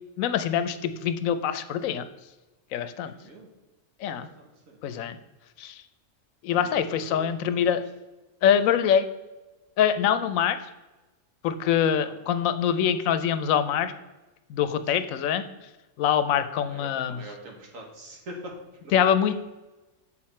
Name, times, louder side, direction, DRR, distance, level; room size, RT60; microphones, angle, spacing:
voice 1, 0.2-2.0 2.7-3.1 4.0-4.3 4.8-5.2 5.6-5.8 6.4-7.8 8.4-9.1 9.8-10.6 11.4-13.9 14.5-15.4 16.0-17.2 18.9-19.3, left 9 dB, 85° left, 11 dB, 1.0 m, -24 dB
voice 2, 3.0-3.5 4.0-4.8 6.6-7.8 12.0-12.2 12.8-12.9 14.9-15.1 16.6-18.5 18.8-18.9, right 1 dB, 80° right, 0 dB, 1.8 m, -44 dB
7.5 x 4.1 x 4.3 m, 1.1 s
omnidirectional pair, 1.4 m